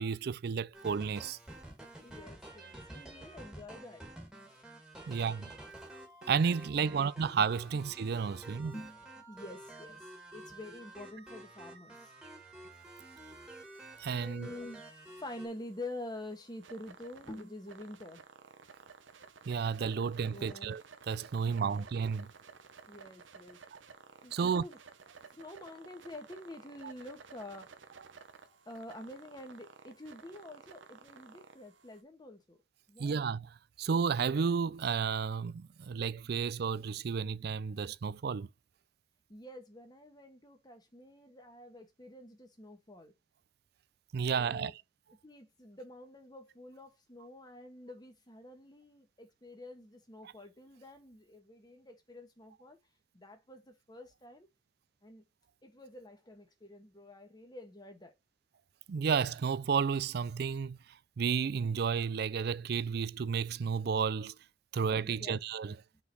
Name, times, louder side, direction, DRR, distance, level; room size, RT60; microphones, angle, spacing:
voice 1, 0.0-1.4 5.1-5.5 6.3-8.8 14.0-14.5 19.5-20.8 21.1-22.3 23.7-23.8 24.3-24.6 33.0-38.5 44.1-44.7 58.9-60.8 61.2-64.3 64.7-65.8, right 6 dB, 55° right, 0.4 m, -32 dB
sound 1, 0.7-15.5, right 1 dB, 5° right, 1.9 m, -50 dB
voice 2, 2.0-4.8 5.0-5.3 6.8-7.2 7.7-7.8 8.7-10.1 10.3-12.1 14.2-14.8 15.2-18.2 20.3-20.7 21.4-21.9 22.9-23.6 24.2-24.8 25.3-27.7 28.4-32.6 32.9-33.2 35.8-35.9 39.3-43.1 44.3-44.7 45.2-52.8 53.1-54.5 55.0-55.2 55.6-58.1 65.0-65.4, left 1 dB, 20° left, 1.4 m, -48 dB
sound 2, 12.8-32.0, right 5 dB, 85° right, 0.9 m, -56 dB
5.9 x 3.9 x 4.1 m
head